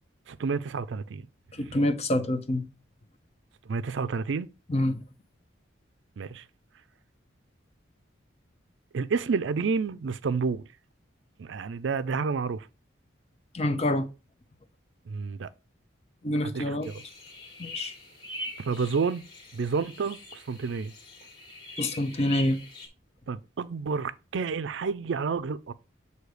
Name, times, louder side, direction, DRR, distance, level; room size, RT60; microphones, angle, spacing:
voice 1, 0.3-1.3 1.6-1.8 3.7-4.5 6.2-6.4 8.9-10.7 11.4-12.7 15.1-15.5 16.5-16.6 18.6-19.2 19.5-20.9 23.3-25.7, right 5 dB, 70° right, 0.4 m, -30 dB
voice 2, 1.6-2.6 4.7-5.0 13.5-14.1 16.2-16.9 17.6-17.9 21.8-22.6, left 1 dB, 30° left, 0.6 m, -26 dB
sound 1, 16.8-22.9, left 2 dB, 50° left, 1.8 m, -42 dB
7.8 x 2.7 x 4.9 m
head